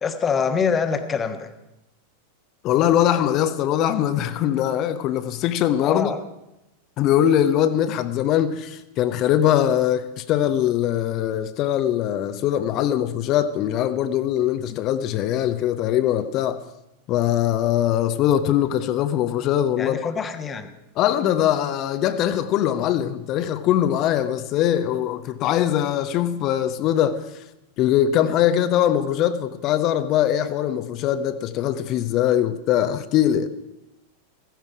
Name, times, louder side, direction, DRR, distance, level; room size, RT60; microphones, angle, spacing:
voice 1, 0.0-1.5 5.8-6.2 19.8-20.7, left 6 dB, 20° left, 1.3 m, -25 dB
voice 2, 2.6-6.1 7.0-16.6 17.1-20.0 21.0-27.4 27.8-33.5, left 11 dB, 35° left, 0.9 m, -22 dB
15.5 x 15.0 x 4.8 m
figure-of-eight pair, 90°, 0 cm